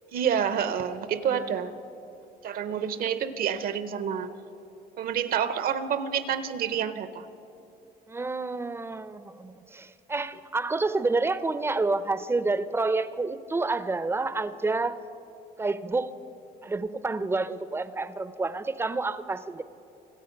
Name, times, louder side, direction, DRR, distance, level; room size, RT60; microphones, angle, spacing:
voice 1, 0.1-1.7 2.4-4.3 5.0-7.3, right 8 dB, 60° right, 0.8 m, -28 dB
voice 2, 8.1-15.0 15.6-16.1 16.6-19.6, right 3 dB, 15° right, 0.5 m, -29 dB
25.0 x 8.4 x 5.2 m
cardioid pair, 110°, 17 cm